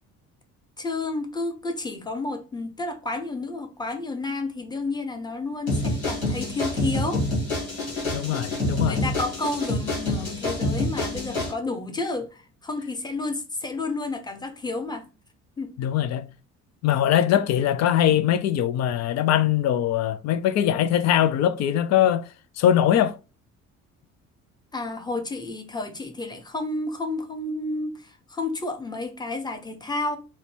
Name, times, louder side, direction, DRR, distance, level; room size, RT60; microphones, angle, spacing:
voice 1, 0.8-7.2 8.8-15.1 15.6-15.7 24.7-30.2, left 2 dB, 10° left, 0.8 m, -31 dB
sound 1, 5.7-11.5, left 2 dB, 80° left, 1.6 m, -27 dB
voice 2, 8.1-9.0 15.8-16.3 16.8-22.2 22.6-23.1, left 10 dB, 40° left, 0.5 m, -21 dB
4.9 x 2.1 x 3.2 m
figure-of-eight pair, 50°, 41 cm